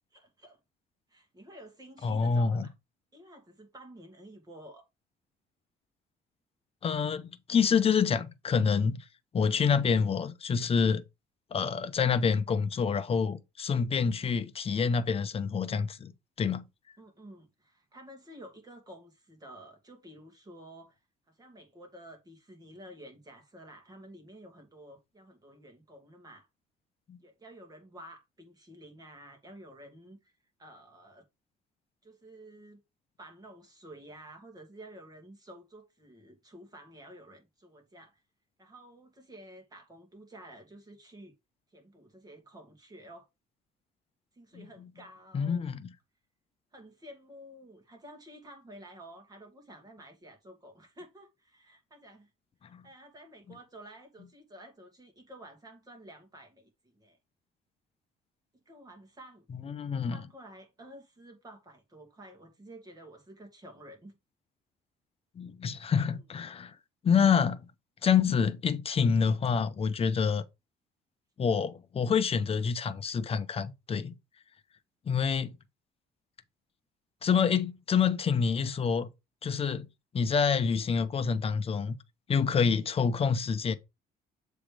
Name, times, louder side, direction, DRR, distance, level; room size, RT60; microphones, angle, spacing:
voice 1, 0.1-0.6 1.1-2.7 3.1-4.9 17.0-21.0 21.3-26.5 27.2-30.3 30.6-31.3 32.0-32.8 33.2-38.2 38.6-41.3 41.7-43.3 44.3-45.7 46.7-52.3 52.6-57.2 58.7-59.5 60.1-64.2 66.1-66.2, right 1 dB, 20° right, 2.4 m, -51 dB
voice 2, 2.0-2.7 6.8-9.0 9.3-11.0 11.5-16.1 16.4-16.7 27.1-27.2 44.5-44.6 45.3-45.8 52.7-52.8 59.5-60.2 65.4-66.7 67.0-67.7 68.0-70.4 71.4-74.1 75.1-75.6 77.2-79.1 79.4-79.9 80.1-82.0 82.3-83.7, left 6 dB, 35° left, 0.9 m, -27 dB
7.3 x 3.5 x 5.0 m
cardioid pair, 110°, 17 cm